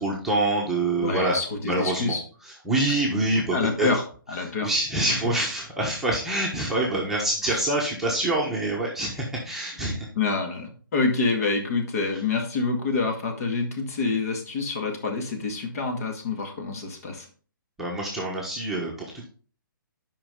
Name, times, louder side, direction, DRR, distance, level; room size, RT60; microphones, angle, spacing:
voice 1, 0.0-1.4 1.6-2.2 2.4-3.9 4.6-10.1 17.8-19.2, right 2 dB, 5° right, -4 dB, 1.2 m, -26 dB
voice 2, 1.0-2.2 3.5-4.0 4.3-4.7 5.1-5.2 7.4-7.6 9.8-17.3, left 4 dB, 45° left, 4 dB, 1.9 m, -27 dB
8.7 x 5.5 x 3.8 m, 0.41 s
hypercardioid pair, 160°, 12 cm